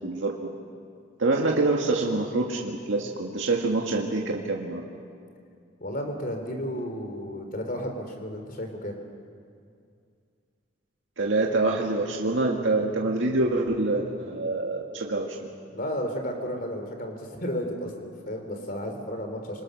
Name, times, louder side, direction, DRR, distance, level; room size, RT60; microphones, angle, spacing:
voice 1, 0.0-0.4 1.2-4.8 11.2-15.4, right 2 dB, 80° right, 0 dB, 1.9 m, -26 dB
voice 2, 5.8-9.0 15.7-19.6, equal, 45° left, 4 dB, 3.6 m, -33 dB
27.0 x 26.5 x 6.5 m, 2.3 s
head